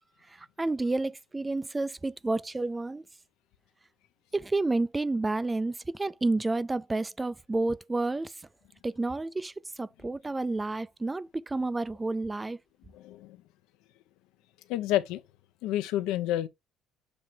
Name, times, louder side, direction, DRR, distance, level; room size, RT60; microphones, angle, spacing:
voice 1, 0.4-3.0 4.3-8.3 8.8-9.5 9.8-12.6, right 2 dB, 10° right, 0.3 m, -30 dB
voice 2, 12.9-13.4 14.7-15.2 15.6-16.5, left 13 dB, 85° left, 0.8 m, -29 dB
7.3 x 3.2 x 4.3 m
cardioid pair, 175°, 0 cm